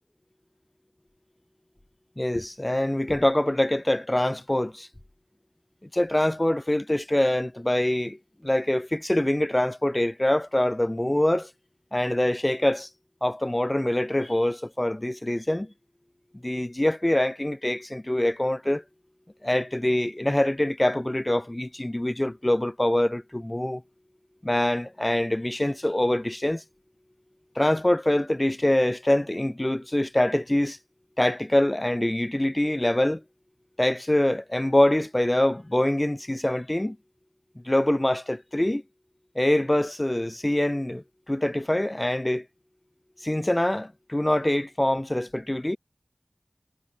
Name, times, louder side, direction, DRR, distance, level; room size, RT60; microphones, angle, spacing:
voice 1, 2.2-4.9 5.9-11.5 11.9-12.9 13.2-15.7 16.4-18.8 19.4-23.8 24.4-26.6 27.6-30.8 31.2-33.2 33.8-37.0 37.7-38.8 39.4-42.5 43.2-45.8, left 1 dB, 25° left, 6.9 m, -24 dB
wide cardioid pair, 50°, 0 cm